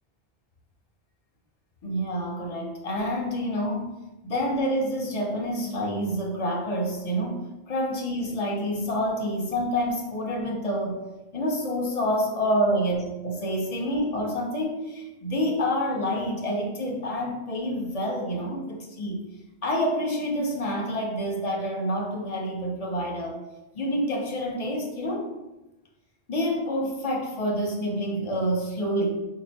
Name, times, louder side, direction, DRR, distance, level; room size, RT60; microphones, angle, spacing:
voice 1, 1.8-3.9 4.2-11.0 11.3-19.2 19.6-23.4 23.7-25.3 26.3-29.1, equal, 40° left, -1 dB, 0.7 m, -28 dB
4.2 x 2.5 x 2.8 m, 1.0 s
omnidirectional pair, 1.0 m